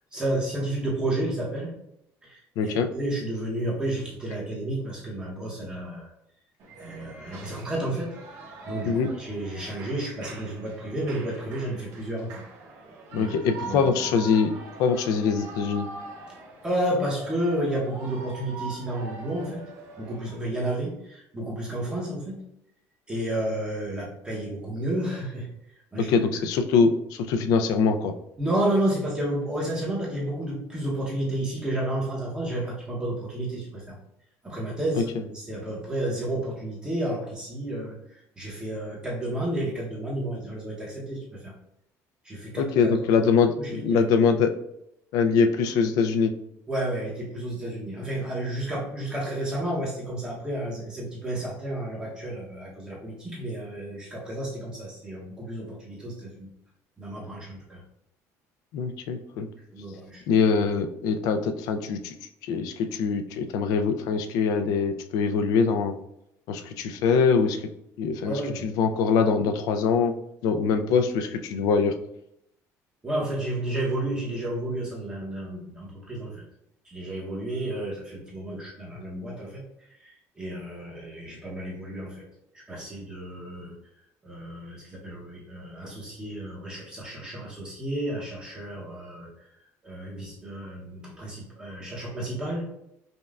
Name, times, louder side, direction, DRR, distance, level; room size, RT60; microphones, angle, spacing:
voice 1, 0.1-1.7 2.2-6.1 6.8-8.2 8.4-12.4 13.1-13.3 13.7-13.9 16.6-19.6 20.0-22.4 23.1-25.5 25.9-26.1 28.4-34.0 34.4-41.5 42.2-42.9 43.3-44.0 46.7-56.5 57.0-57.8 59.7-60.2 68.2-68.7 73.0-76.4 76.8-79.6 80.0-82.3 82.5-83.7 84.2-89.5 89.8-92.7, right 1 dB, 15° right, -5 dB, 0.8 m, -31 dB
voice 2, 2.6-2.9 8.8-9.1 13.1-14.5 14.8-15.9 26.0-28.1 42.6-44.5 45.1-46.3 58.7-59.5 60.3-62.1 62.4-65.9 66.5-67.7 68.0-70.1 70.4-71.9, left 5 dB, 75° left, 7 dB, 0.4 m, -23 dB
Shout / Cheering, 6.6-20.5, right 3 dB, 60° right, 0.9 m, -43 dB
5.2 x 2.2 x 2.3 m, 0.79 s
cardioid pair, 155°, 6 cm